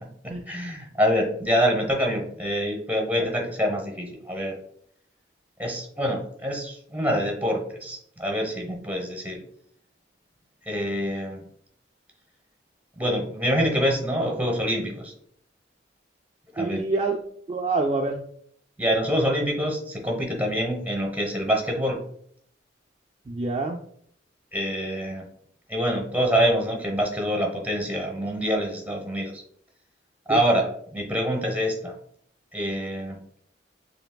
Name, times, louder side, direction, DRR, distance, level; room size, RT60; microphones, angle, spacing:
voice 1, 0.5-4.6 5.6-9.4 10.7-11.4 13.0-15.1 16.5-16.8 18.8-22.0 24.5-25.2 25.7-29.4 30.3-31.9 32.5-33.2, equal, 10° right, 0 dB, 1.0 m, -26 dB
voice 2, 16.6-17.2 17.5-18.2 23.3-23.8, right 3 dB, 30° right, 1 dB, 0.3 m, -26 dB
6.8 x 3.3 x 2.3 m, 0.65 s
head